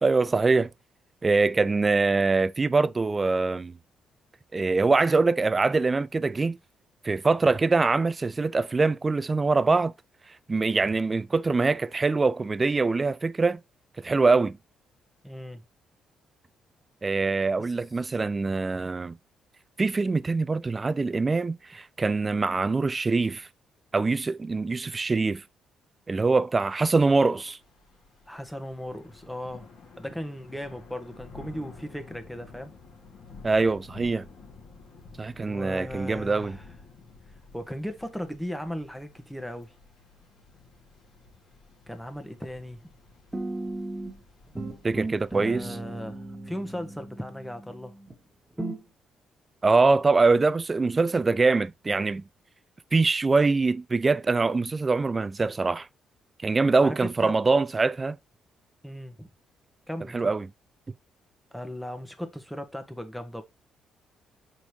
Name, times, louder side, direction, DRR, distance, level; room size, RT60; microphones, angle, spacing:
voice 1, 0.0-0.7 1.2-3.7 4.5-6.6 7.0-9.9 10.5-13.6 14.0-14.6 17.0-19.2 19.8-23.5 23.9-25.4 26.1-27.6 33.4-34.3 35.2-36.6 44.8-45.8 49.6-52.2 52.9-55.9 56.4-58.2 60.1-60.5, right 3 dB, 30° right, 0.4 m, -23 dB
voice 2, 15.2-15.6 17.6-17.7 28.3-29.7 30.0-32.7 35.4-36.7 37.5-39.7 41.9-42.9 45.3-47.9 56.8-57.3 58.8-59.3 59.9-60.2 61.5-63.4, equal, 5° left, 1.5 m, -37 dB
Thunder / Rain, 27.6-46.0, left 4 dB, 65° left, 2.8 m, -51 dB
sound 1, 43.3-44.2 44.6-48.1 48.6-48.8, right 2 dB, 15° right, 2.1 m, -36 dB
6.1 x 5.2 x 3.1 m
hypercardioid pair, 50°, 0 cm